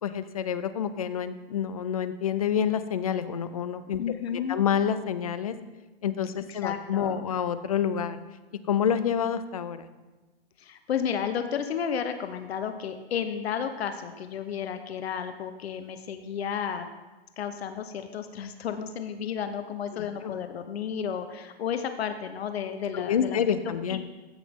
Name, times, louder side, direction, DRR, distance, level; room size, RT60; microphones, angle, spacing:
voice 1, 0.0-4.0 4.3-5.5 6.0-8.2 8.7-9.9 19.9-20.3 22.9-24.0, left 8 dB, 35° left, 12 dB, 0.4 m, -28 dB
voice 2, 4.0-4.6 6.6-7.2 10.6-16.9 17.4-23.4 23.9-24.0, left 8 dB, 80° left, 8 dB, 0.8 m, -32 dB
15.0 x 6.0 x 3.6 m, 1.2 s
hypercardioid pair, 180°, 31 cm